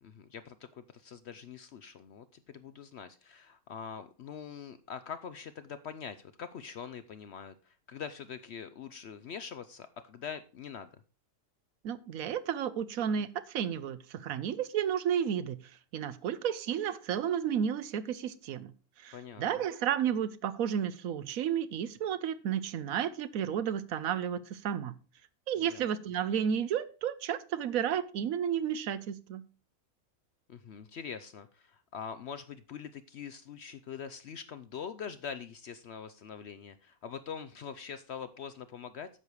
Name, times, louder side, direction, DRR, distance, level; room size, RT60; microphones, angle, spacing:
voice 1, 0.0-11.0 19.1-19.6 25.6-25.8 30.5-39.1, left 7 dB, 60° left, 0.7 m, -44 dB
voice 2, 11.8-15.6 15.9-18.7 19.0-24.9 25.5-29.4, right 8 dB, 75° right, 1.1 m, -32 dB
9.7 x 6.8 x 4.7 m
omnidirectional pair, 1.6 m